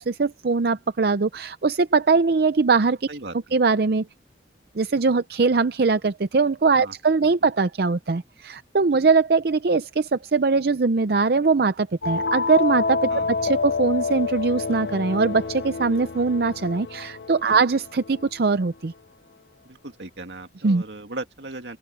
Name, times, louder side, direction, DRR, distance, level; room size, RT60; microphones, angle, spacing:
voice 1, 0.0-3.1 3.5-4.1 4.7-13.1 13.4-18.9 20.6-20.8, right 4 dB, 60° right, 0.5 m, -21 dB
sound 1, 12.0-18.5, left 4 dB, 80° left, 0.8 m, -28 dB
voice 2, 13.1-13.6 17.5-17.6 19.6-21.8, right 2 dB, 85° right, 2.2 m, -37 dB
open air
head